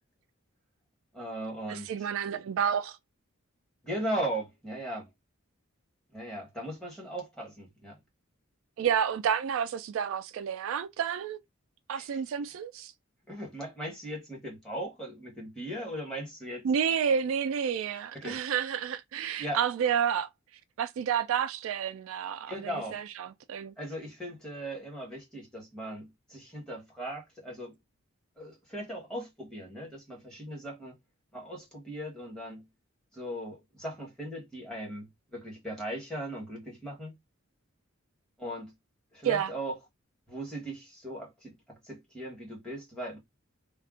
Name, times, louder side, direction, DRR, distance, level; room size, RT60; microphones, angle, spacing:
voice 1, 1.1-1.9 3.8-5.1 6.1-8.0 11.9-12.2 13.3-16.7 18.1-18.4 19.4-19.6 22.5-23.0 23.8-27.7 28.4-31.0 31.3-32.7 33.1-37.1 38.4-38.7 39.1-39.8 40.3-43.2, right 1 dB, 5° left, 1.2 m, -38 dB
voice 2, 1.7-3.0 8.8-11.4 11.9-12.9 16.6-20.3 20.8-23.7 39.2-39.5, right 8 dB, 70° right, 0.3 m, -30 dB
2.5 x 2.3 x 3.6 m
head